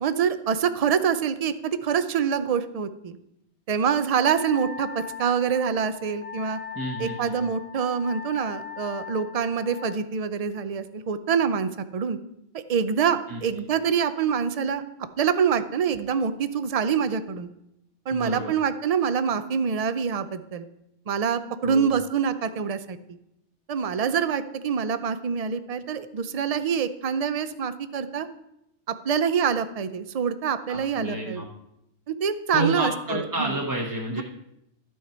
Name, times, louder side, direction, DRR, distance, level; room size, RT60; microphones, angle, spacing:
voice 1, 0.0-3.2 3.7-6.6 7.0-12.2 12.5-14.8 15.2-17.5 18.1-20.6 21.1-23.0 23.7-28.3 28.9-31.4 32.1-33.6 34.1-34.2, right 7 dB, 45° right, 12 dB, 0.5 m, -25 dB
Wind instrument woodwind instrument, 4.3-10.0, left 7 dB, 60° left, 1.1 m, -39 dB
voice 2, 6.7-7.5 13.3-13.6 18.1-18.5 21.6-22.0 30.7-31.5 32.5-34.2, right 1 dB, 20° right, -1 dB, 1.0 m, -30 dB
12.5 x 6.5 x 4.3 m, 0.83 s
omnidirectional pair, 1.2 m